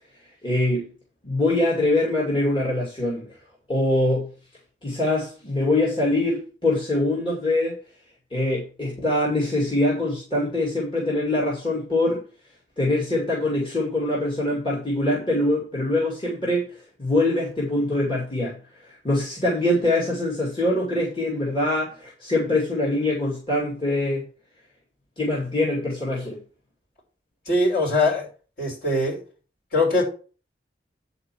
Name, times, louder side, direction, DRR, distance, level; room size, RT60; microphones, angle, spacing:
voice 1, 0.4-0.9 1.2-3.3 3.7-4.3 4.8-7.7 8.3-12.2 12.8-16.7 17.0-18.6 18.9-24.2 25.2-26.4, left 1 dB, 30° left, -4 dB, 2.4 m, -23 dB
voice 2, 27.5-28.3 28.6-29.2 29.7-30.0, left 2 dB, 55° left, -3 dB, 5.2 m, -21 dB
9.6 x 4.3 x 6.1 m, 0.38 s
head